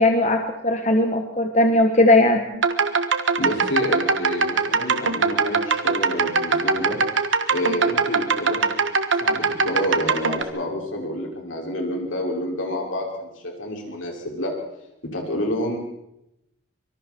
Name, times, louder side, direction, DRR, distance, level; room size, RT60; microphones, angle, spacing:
voice 1, 0.0-2.4, left 1 dB, 35° left, 4 dB, 1.7 m, -18 dB
sound 1, 2.5-10.4, right 4 dB, 80° right, 1.5 m, -22 dB
voice 2, 3.4-7.0 7.5-8.8 9.2-14.5 15.1-15.8, left 1 dB, 85° left, 0 dB, 6.2 m, -28 dB
25.0 x 24.0 x 4.6 m, 0.84 s
head